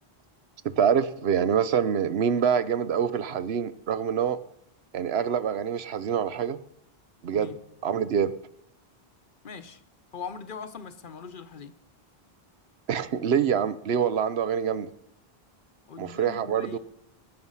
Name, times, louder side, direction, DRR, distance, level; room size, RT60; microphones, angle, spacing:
voice 1, 0.6-4.4 4.9-6.6 7.2-7.5 7.8-8.3 12.9-14.9 16.0-16.8, right 7 dB, 80° right, 14 dB, 1.0 m, -25 dB
voice 2, 9.4-9.8 10.1-11.7 15.9-16.8, left 5 dB, 55° left, 11 dB, 1.0 m, -41 dB
20.0 x 8.8 x 5.6 m, 0.78 s
omnidirectional pair, 1.0 m